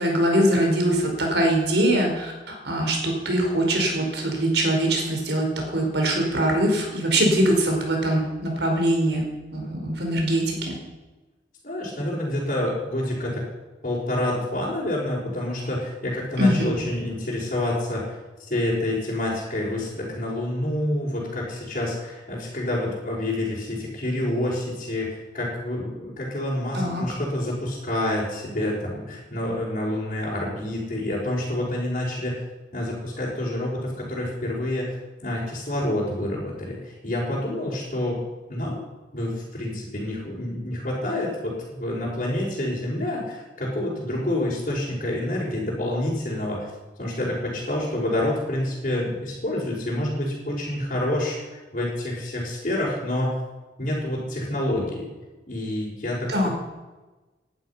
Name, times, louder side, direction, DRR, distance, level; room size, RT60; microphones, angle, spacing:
voice 1, 0.0-10.8 16.4-16.7 26.7-27.0 56.3-56.5, right 1 dB, 70° right, 2 dB, 4.8 m, -22 dB
voice 2, 11.6-13.4 13.8-32.4 32.7-34.9 35.2-38.2 38.5-38.8 39.1-46.7 47.0-51.4 51.7-53.3 53.8-55.1 55.5-56.5, left 1 dB, 40° left, -8 dB, 5.1 m, -28 dB
18.5 x 11.5 x 5.8 m, 1.2 s
head